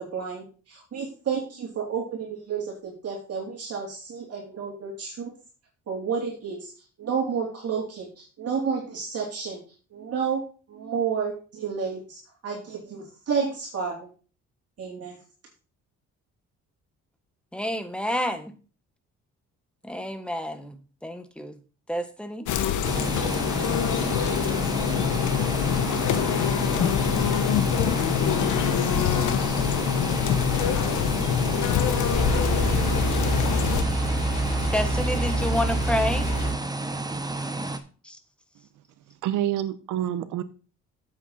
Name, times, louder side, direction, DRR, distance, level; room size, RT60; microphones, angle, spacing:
voice 1, 0.0-5.3 5.9-6.6 7.0-8.1 8.4-9.6 9.9-10.4 10.7-12.2 12.4-14.0 14.8-15.2, right 6 dB, 55° right, -2 dB, 3.5 m, -30 dB
voice 2, 17.5-18.5 19.8-21.6 21.9-22.5 34.7-36.3 38.0-38.2, equal, 5° left, 8 dB, 1.5 m, -29 dB
sound 1, 22.5-33.8, left 9 dB, 75° left, 1.2 m, -25 dB
sound 2, 22.8-37.8, right 2 dB, 15° right, 1.2 m, -31 dB
sound 3, 32.1-36.5, right 1 dB, 20° left, 6.2 m, -26 dB
voice 3, 39.2-40.4, right 11 dB, 85° right, 13 dB, 1.0 m, -27 dB
8.5 x 8.1 x 4.3 m, 0.37 s
cardioid pair, 90°, 30 cm